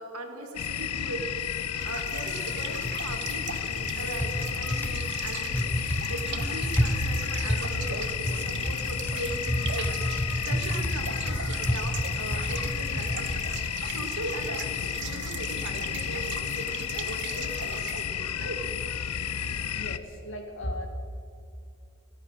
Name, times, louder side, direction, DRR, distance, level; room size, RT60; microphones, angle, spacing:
voice 1, 0.0-1.4 1.8-5.7 6.1-13.4 13.8-18.6, right 2 dB, 85° right, 4 dB, 2.2 m, -39 dB
sound 1, 0.6-20.0, left 8 dB, 85° left, 0.6 m, -32 dB
sound 2, 1.8-18.0, right 8 dB, 50° right, 0.8 m, -41 dB
Typing, 2.4-14.9, equal, 10° left, 0.8 m, -32 dB
voice 2, 19.7-20.9, equal, 55° left, 4 dB, 2.0 m, -36 dB
14.5 x 14.0 x 6.5 m, 2.5 s
head